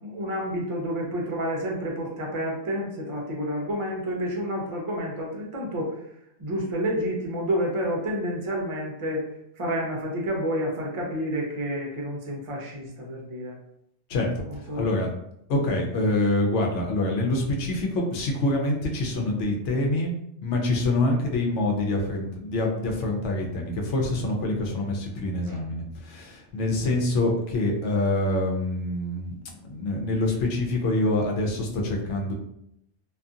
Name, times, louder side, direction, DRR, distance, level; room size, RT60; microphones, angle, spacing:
voice 1, 0.0-6.0 6.4-9.3 9.6-13.6 14.5-14.9, equal, 35° right, -2 dB, 0.6 m, -29 dB
voice 2, 14.1-14.4 14.7-15.1 15.5-20.1 20.4-29.4 29.6-32.3, left 2 dB, 90° left, 0 dB, 0.9 m, -26 dB
2.6 x 2.5 x 2.4 m, 0.76 s
omnidirectional pair, 1.2 m